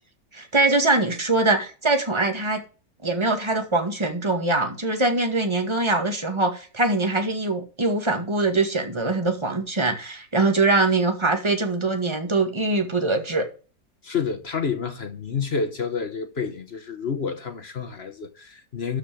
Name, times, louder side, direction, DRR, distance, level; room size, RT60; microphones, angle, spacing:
voice 1, 0.3-2.6 3.0-13.4, right 2 dB, 15° right, 1.9 m, -23 dB
voice 2, 14.0-19.0, left 5 dB, 45° left, 1.1 m, -29 dB
13.0 x 4.9 x 6.1 m
omnidirectional pair, 1.8 m